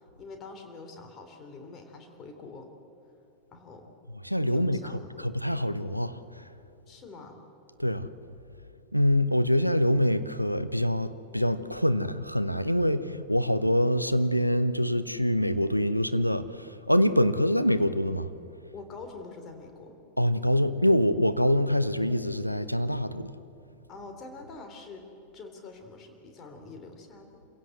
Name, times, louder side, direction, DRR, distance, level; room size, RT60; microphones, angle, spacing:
voice 1, 0.2-2.7 3.5-3.9 4.5-5.3 6.9-7.4 18.7-20.0 23.9-25.0 25.3-27.4, left 3 dB, 30° left, 4 dB, 3.5 m, -45 dB
voice 2, 4.2-4.8 5.2-6.4 7.8-8.1 8.9-18.3 20.2-23.3, equal, 90° left, 11 dB, 0.8 m, -25 dB
26.5 x 16.5 x 7.9 m, 2.9 s
figure-of-eight pair, 90°, 0 cm